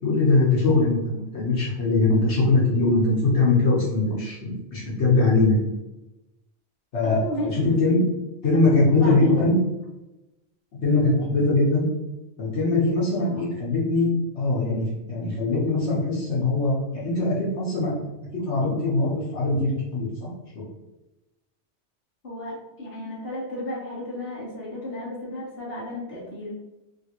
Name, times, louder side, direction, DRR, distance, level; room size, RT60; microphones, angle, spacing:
voice 1, 0.0-5.7 6.9-8.0 8.4-9.6 10.8-11.8 12.4-14.1 14.3-20.3 20.5-20.6, left 2 dB, 75° left, -7 dB, 1.3 m, -22 dB
voice 2, 7.0-7.7 8.5-8.6 9.0-9.3 13.1-13.3 22.2-26.5, equal, 55° left, -6 dB, 1.3 m, -33 dB
3.6 x 2.5 x 2.9 m, 1.0 s
omnidirectional pair, 1.2 m